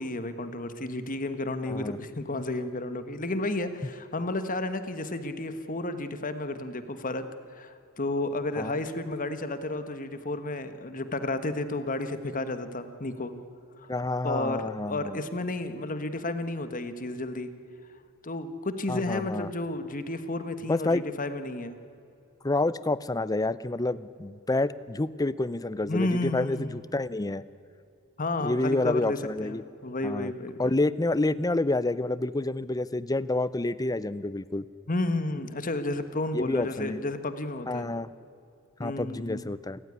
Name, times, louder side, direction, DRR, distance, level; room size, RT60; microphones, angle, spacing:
voice 1, 0.0-7.2 7.5-13.3 13.8-13.9 14.2-17.5 18.2-21.8 25.9-26.8 28.2-30.7 34.9-37.9 38.8-39.4, left 2 dB, 40° left, 10 dB, 1.4 m, -32 dB
voice 2, 1.7-2.0 8.6-8.7 13.9-15.2 18.9-19.5 20.7-21.0 22.4-27.4 28.4-29.6 30.0-30.3 30.6-34.6 36.3-37.0 37.7-38.1 38.8-39.8, left 2 dB, 15° left, 17 dB, 0.6 m, -28 dB
28.0 x 15.0 x 9.8 m, 2.6 s
head